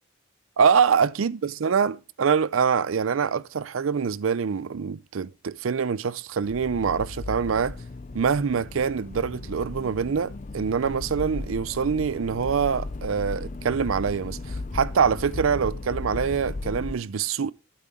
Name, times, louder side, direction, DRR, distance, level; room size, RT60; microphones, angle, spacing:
voice 1, 0.6-7.8 8.1-17.5, right 6 dB, 75° right, 0.5 m, -25 dB
Accelerating revving vroom, 6.4-16.9, left 2 dB, 35° left, 0.4 m, -36 dB
12.5 x 8.0 x 3.6 m
head